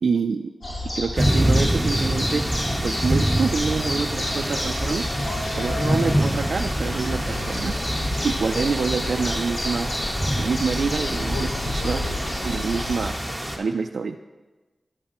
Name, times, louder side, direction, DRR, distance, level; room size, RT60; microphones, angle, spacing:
voice 1, 0.0-0.5 0.9-2.5 2.8-5.0 5.5-7.7 8.2-10.0 10.4-12.0 12.4-13.2 13.6-14.2, right 5 dB, 75° right, 4 dB, 0.4 m, -26 dB
sound 1, 0.6-13.1, left 1 dB, 65° left, 3.9 m, -30 dB
sound 2, 1.2-13.6, equal, ahead, 1.8 m, -26 dB
sound 3, 4.1-12.5, left 2 dB, 85° left, 1.1 m, -37 dB
14.0 x 10.0 x 3.0 m, 1.2 s
cardioid pair, 45°, 0 cm